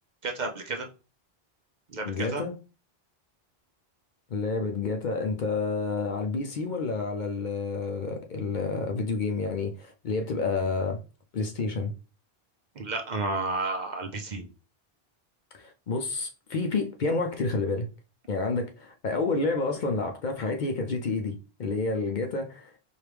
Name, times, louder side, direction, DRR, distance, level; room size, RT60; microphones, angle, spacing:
voice 1, 0.2-0.9 1.9-2.4 12.8-14.5, right 3 dB, 50° right, 0.7 m, -31 dB
voice 2, 2.0-2.6 4.3-11.0 11.3-11.9 15.5-17.9 18.3-22.7, left 3 dB, 55° left, 0.6 m, -29 dB
4.5 x 2.4 x 3.3 m
omnidirectional pair, 1.0 m